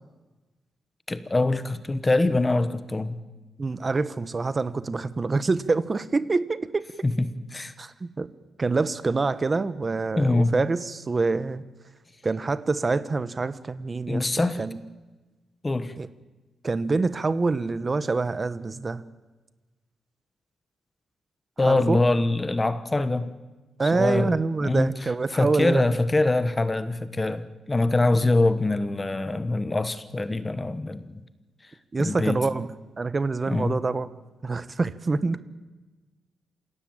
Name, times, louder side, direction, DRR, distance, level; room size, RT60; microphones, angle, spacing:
voice 1, 1.1-3.2 7.5-7.7 10.2-10.5 14.1-14.7 15.6-15.9 21.6-23.3 23.8-24.3 24.6-24.9 25.3-31.2 32.0-32.4 33.5-33.8, left 2 dB, 20° left, 13 dB, 1.1 m, -24 dB
voice 2, 3.6-6.8 7.8-8.3 8.6-11.6 12.2-14.8 16.0-16.1 16.6-19.0 21.6-22.0 23.8-25.8 31.9-32.7 33.0-34.1 34.4-35.4, right 3 dB, 25° right, 15 dB, 1.0 m, -26 dB
27.5 x 16.5 x 8.8 m, 1.2 s
wide cardioid pair, 140°, 0 cm